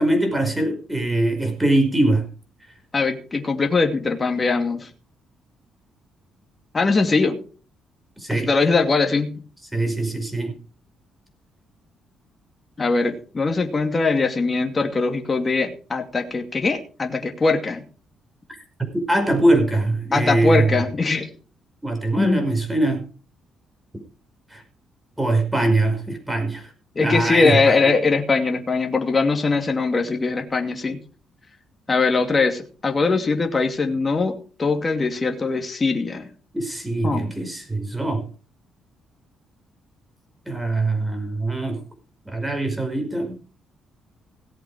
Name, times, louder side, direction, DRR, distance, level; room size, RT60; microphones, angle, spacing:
voice 1, 0.0-2.2 8.2-8.5 9.7-10.5 19.1-20.9 21.8-23.0 24.5-24.6 25.2-26.7 27.0-27.9 36.5-38.3 40.5-41.8 42.3-43.4, right 2 dB, 10° right, 5 dB, 5.4 m, -22 dB
voice 2, 2.9-4.9 6.7-7.4 8.3-9.3 12.8-17.8 20.1-21.3 22.2-22.5 27.0-31.0 31.9-36.2 37.0-37.3, left 4 dB, 30° left, 5 dB, 2.5 m, -21 dB
17.5 x 7.9 x 5.0 m, 0.37 s
cardioid pair, 90°, 0 cm